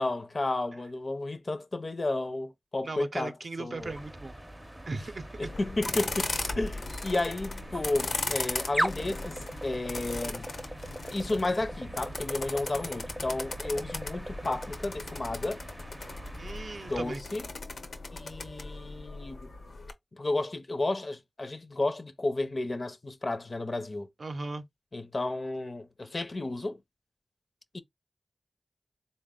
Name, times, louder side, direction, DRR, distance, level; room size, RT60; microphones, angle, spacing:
voice 1, 0.0-3.9 5.4-10.5 11.0-15.6 16.9-17.4 18.1-19.5 20.1-24.1 24.9-26.8 27.7-27.8, left 2 dB, 45° left, 0.5 m, -32 dB
voice 2, 2.8-4.3 4.9-5.5 16.4-17.2 24.2-24.7, right 3 dB, 60° right, 0.5 m, -37 dB
sound 1, 3.8-17.2, right 1 dB, 10° right, 0.5 m, -40 dB
sound 2, 5.4-19.9, left 3 dB, 90° left, 0.8 m, -38 dB
4.0 x 2.1 x 3.5 m
wide cardioid pair, 95°, 0 cm